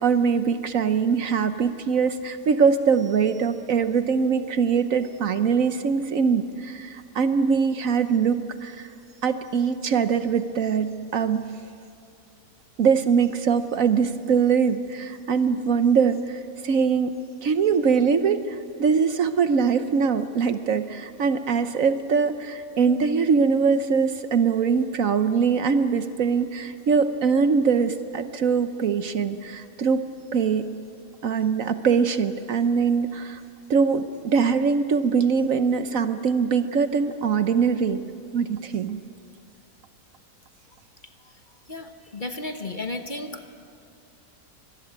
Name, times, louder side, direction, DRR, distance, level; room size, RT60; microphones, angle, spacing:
voice 1, 0.0-8.9 9.2-11.5 12.8-17.1 17.4-30.1 30.3-30.7 31.2-33.4 33.7-38.0 38.3-39.0, right 6 dB, 60° right, 10 dB, 1.2 m, -22 dB
voice 2, 41.7-43.6, left 2 dB, 35° left, 6 dB, 1.3 m, -34 dB
25.0 x 20.5 x 8.9 m, 2.5 s
omnidirectional pair, 1.7 m